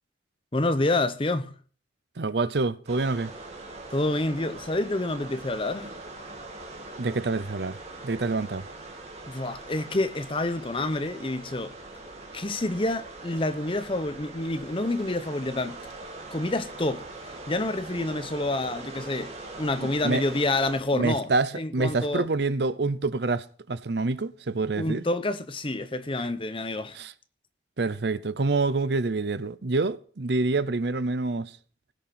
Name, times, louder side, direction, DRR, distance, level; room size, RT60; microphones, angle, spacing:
voice 1, 0.5-1.5 3.9-5.9 9.3-11.7 12.3-15.8 16.3-21.3 21.5-22.2 24.8-27.0, left 2 dB, 30° left, 0.8 m, -28 dB
voice 2, 2.2-3.3 7.0-8.6 19.8-20.2 20.9-25.0 26.9-27.1 27.8-31.5, right 3 dB, 65° right, 0.7 m, -27 dB
sound 1, 2.9-20.8, right 2 dB, 35° right, 2.1 m, -42 dB
17.0 x 6.5 x 5.9 m
head